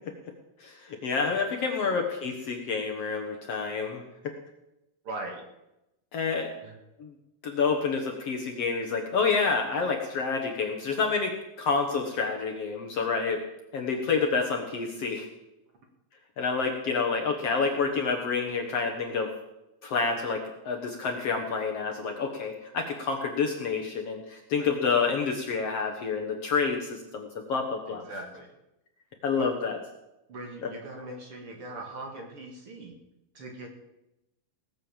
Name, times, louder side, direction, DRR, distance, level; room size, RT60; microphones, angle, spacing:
voice 1, 0.6-4.0 6.1-6.5 7.0-7.1 7.4-11.3 11.6-13.4 13.7-15.3 16.4-19.3 19.8-28.0 29.2-29.8 30.6-30.7, left 5 dB, 55° left, 2 dB, 2.0 m, -28 dB
voice 2, 5.0-5.4 6.6-6.7 24.6-24.7 27.9-28.5 29.4-29.5 30.3-32.9 33.3-33.8, right 2 dB, 45° right, 2 dB, 2.4 m, -40 dB
19.0 x 7.7 x 7.2 m, 0.91 s
omnidirectional pair, 4.0 m